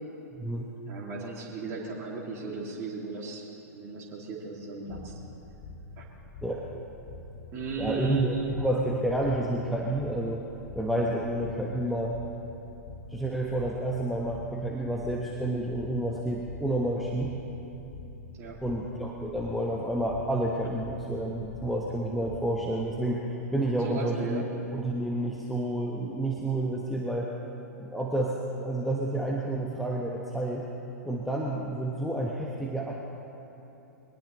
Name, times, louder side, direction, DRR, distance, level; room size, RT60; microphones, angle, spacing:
voice 1, 0.3-0.7 6.4-6.6 7.8-10.5 10.7-12.2 13.1-17.3 18.6-23.2 23.5-24.4 24.7-27.3 27.8-30.7 31.0-32.9, right 1 dB, ahead, -3 dB, 1.2 m, -30 dB
voice 2, 0.9-5.1 6.0-6.1 7.5-8.5 18.4-18.6 23.8-24.4, right 3 dB, 30° right, -3 dB, 2.4 m, -36 dB
sound 1, 4.9-23.0, left 3 dB, 50° left, 1.9 m, -46 dB
22.5 x 19.0 x 3.1 m, 3.0 s
figure-of-eight pair, 105°, 9 cm